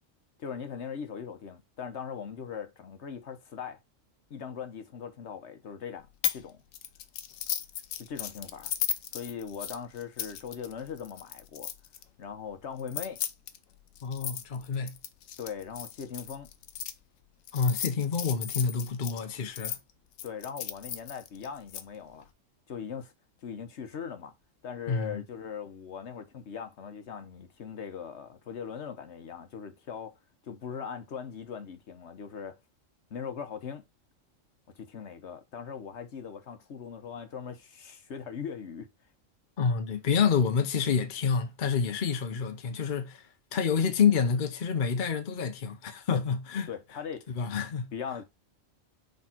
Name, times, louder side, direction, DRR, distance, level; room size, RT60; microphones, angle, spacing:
voice 1, 0.4-3.8 4.3-6.1 6.3-6.6 8.0-8.7 9.1-11.7 12.2-13.2 15.4-16.5 20.2-22.3 22.7-23.1 23.4-24.3 24.6-30.2 30.5-32.6 33.1-33.8 34.7-38.9 46.1-46.2 46.7-47.3 47.9-48.2, left 7 dB, 60° left, 1.2 m, -40 dB
sound 1, 6.2-6.4 6.7-12.0 12.8-16.9 17.5-19.8 20.2-21.8, left 9 dB, 85° left, 1.1 m, -36 dB
voice 2, 14.0-15.0 17.5-19.8 24.9-25.2 39.6-43.3 43.5-46.7 47.4-47.9, left 6 dB, 45° left, 0.8 m, -28 dB
6.1 x 3.6 x 4.3 m
omnidirectional pair, 1.3 m